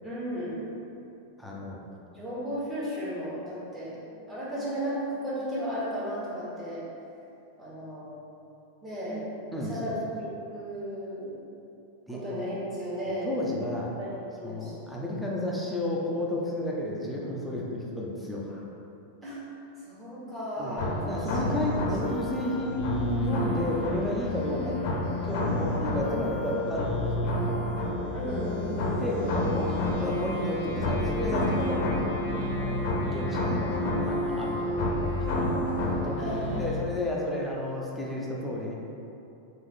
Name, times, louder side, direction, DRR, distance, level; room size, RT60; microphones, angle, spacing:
voice 1, 0.0-0.6 2.1-4.0 4.3-6.8 7.6-8.1 8.8-9.2 9.5-11.3 12.1-13.4 14.0-14.9 19.2-19.4 19.8-20.9 21.3-21.9 24.5-24.7 28.1-29.1 33.3-34.4 36.2-36.6, equal, 15° right, -10 dB, 1.5 m, -35 dB
voice 2, 1.4-1.8 9.5-10.0 12.1-12.2 13.2-13.9 14.4-18.6 20.6-20.8 21.1-24.7 25.2-27.6 28.8-32.0 32.4-32.8 33.0-33.6 34.1-34.9 35.3-35.5 36.0-38.7, left 1 dB, ahead, -5 dB, 0.6 m, -32 dB
sound 1, 20.8-36.8, left 1 dB, 55° left, 0.7 m, -29 dB
3.6 x 2.6 x 3.7 m, 2.7 s
hypercardioid pair, 125°, 0 cm